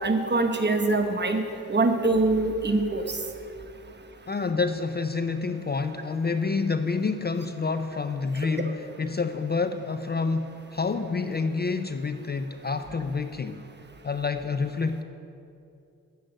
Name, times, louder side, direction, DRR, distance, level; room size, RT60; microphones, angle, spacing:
voice 1, 0.0-3.0, right 2 dB, 30° right, 5 dB, 1.1 m, -24 dB
voice 2, 4.3-13.6 14.0-15.0, left 4 dB, 30° left, 9 dB, 0.4 m, -28 dB
8.8 x 7.8 x 6.5 m, 2.7 s
cardioid pair, 55°, 35 cm